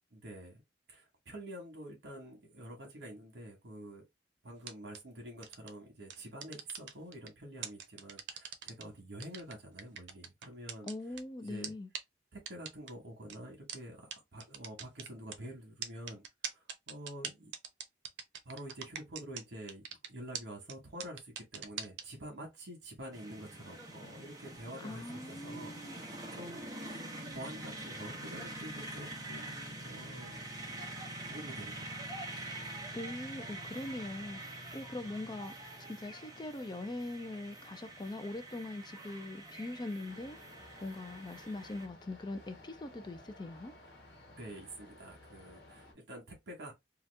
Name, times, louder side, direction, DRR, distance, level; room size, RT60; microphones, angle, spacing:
voice 1, 0.1-0.6 0.9-4.0 4.4-10.9 11.4-11.7 12.3-17.5 18.4-19.8 20.1-27.0 27.3-30.5 31.3-32.6 44.3-46.7, right 1 dB, 70° right, 1.2 m, -48 dB
sound 1, 4.6-5.0 5.4-5.7 6.1-7.3 7.6-8.8 9.2-11.2 11.6-11.7 11.9-12.0 12.5-12.9 13.3-13.4 13.7-13.8 14.1-14.2 14.4-15.4 15.8-19.4 19.7-20.1 20.3-20.4 20.7-20.8 21.0-22.0, right 8 dB, 90° right, 0.6 m, -41 dB
voice 2, 10.9-11.9 24.8-26.0 32.9-40.4 40.8-43.7, left 2 dB, 25° left, 0.4 m, -42 dB
sound 2, 23.1-41.9, right 1 dB, 20° right, 0.8 m, -45 dB
sound 3, 40.1-45.9, left 1 dB, 85° left, 1.2 m, -56 dB
2.9 x 2.4 x 3.2 m
head